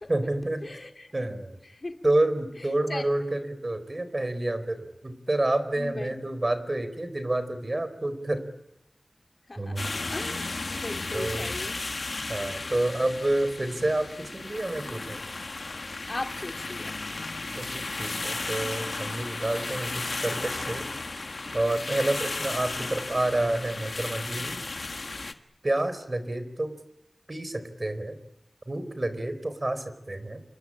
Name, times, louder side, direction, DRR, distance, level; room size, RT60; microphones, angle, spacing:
voice 1, 0.1-0.6 1.1-1.6 2.0-8.4 9.6-10.1 11.1-11.5 12.3-15.2 17.6-20.9 21.5-24.6 25.6-26.7 27.3-28.2 28.7-30.4, right 1 dB, 45° right, 4.5 m, -29 dB
voice 2, 0.6-1.1 1.7-2.0 2.9-3.1 5.8-6.2 9.5-11.8 16.1-17.0, left 2 dB, 55° left, 3.3 m, -38 dB
sound 1, 9.8-25.3, left 3 dB, 75° left, 1.6 m, -34 dB
28.0 x 23.5 x 8.9 m
wide cardioid pair, 45°, 0 cm